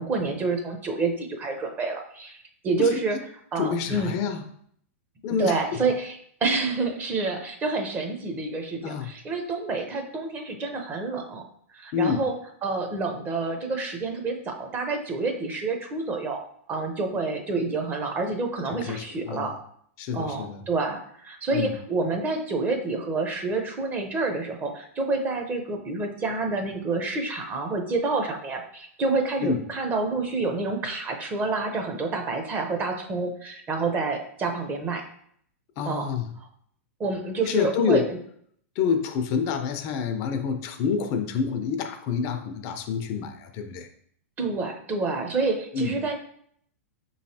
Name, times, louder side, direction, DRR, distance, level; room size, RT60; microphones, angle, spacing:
voice 1, 0.0-2.4 2.6-3.2 3.5-4.1 5.4-6.2 6.4-11.4 11.7-12.3 12.6-16.4 16.7-19.6 20.1-35.0 35.8-36.1 36.4-36.5 37.0-38.2 44.4-46.2, right 3 dB, 25° right, 4 dB, 0.7 m, -28 dB
voice 2, 3.6-4.4 5.2-5.8 8.8-9.1 11.9-12.2 18.9-19.5 20.0-20.6 21.5-21.7 29.4-29.6 35.8-36.2 37.5-38.1 38.8-43.9 45.7-46.0, left 6 dB, 45° left, 7 dB, 0.5 m, -27 dB
5.1 x 3.1 x 2.8 m, 0.65 s
hypercardioid pair, 125°, 8 cm